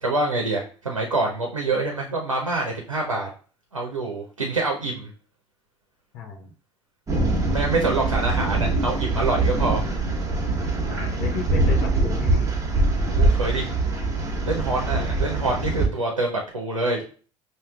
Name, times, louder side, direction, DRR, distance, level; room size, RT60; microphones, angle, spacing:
voice 1, 0.0-3.3 3.7-5.1 7.5-9.8 13.1-13.7 14.4-17.0, right 2 dB, 90° right, -1 dB, 0.6 m, -26 dB
voice 2, 6.1-6.5 10.9-12.6 14.9-15.1, left 4 dB, 60° left, -1 dB, 0.9 m, -34 dB
sound 1, 7.1-15.9, right 2 dB, 20° right, 1.1 m, -23 dB
5.5 x 2.7 x 2.3 m, 0.39 s
figure-of-eight pair, 65°, 16 cm